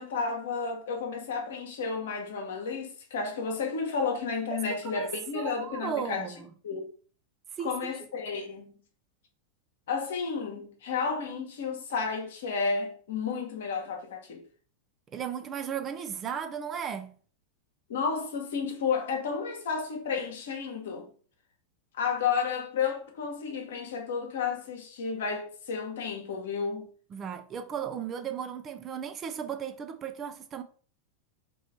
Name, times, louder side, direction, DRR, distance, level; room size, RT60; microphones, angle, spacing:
voice 1, 0.0-6.3 6.6-6.9 7.6-8.8 9.9-14.4 17.9-21.1 21.9-26.9, left 5 dB, 60° left, 1.0 m, -32 dB
voice 2, 5.3-6.5 7.5-8.0 15.1-17.2 27.1-30.6, right 8 dB, 25° right, 0.4 m, -35 dB
3.1 x 3.0 x 4.1 m
figure-of-eight pair, 90°, 0 cm